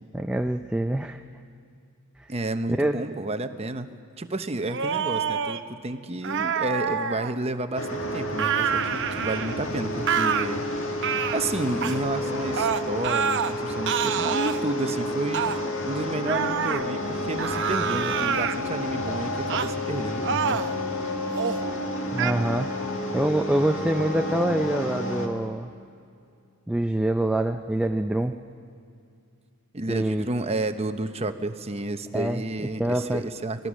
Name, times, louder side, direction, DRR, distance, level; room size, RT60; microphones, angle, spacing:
voice 1, 0.1-1.2 2.8-3.0 22.1-22.8 23.1-25.7 26.7-28.4 29.9-30.3 32.1-32.4 32.8-33.2, right 1 dB, 5° right, 5 dB, 0.4 m, -25 dB
voice 2, 2.3-10.7 11.3-15.5 15.8-20.6 29.7-33.7, right 2 dB, 30° right, 9 dB, 0.8 m, -31 dB
sound 1, 4.7-5.6 6.2-7.3 8.4-9.6 10.1-10.5 11.0-11.4 11.8-12.0 12.6-13.5 13.9-14.6 15.3-15.6 16.3-16.8 17.4-18.6 19.5-19.7 20.2-20.7 21.3-21.6 22.2-22.3, right 7 dB, 55° right, 0.7 m, -27 dB
sound 2, 7.7-25.3, left 1 dB, 60° left, 2.0 m, -30 dB
24.5 x 19.0 x 6.3 m, 2.4 s
head